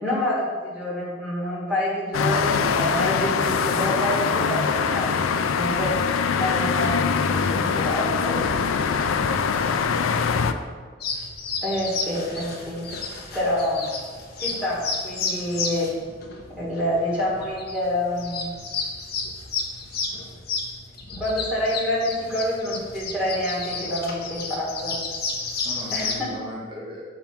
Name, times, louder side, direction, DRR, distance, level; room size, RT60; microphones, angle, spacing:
voice 1, 0.0-5.9 6.4-8.4 11.6-12.9 13.3-13.9 14.4-15.9 16.5-18.5 21.2-25.0 25.9-26.3, left 1 dB, 5° right, -7 dB, 1.6 m, -27 dB
sound 1, 2.1-10.5, left 6 dB, 90° left, 0.4 m, -23 dB
voice 2, 8.9-10.3 25.6-27.0, equal, 25° right, -6 dB, 1.5 m, -38 dB
sound 2, 11.0-26.2, left 4 dB, 50° left, 0.9 m, -32 dB
5.7 x 3.6 x 5.8 m, 1.5 s
head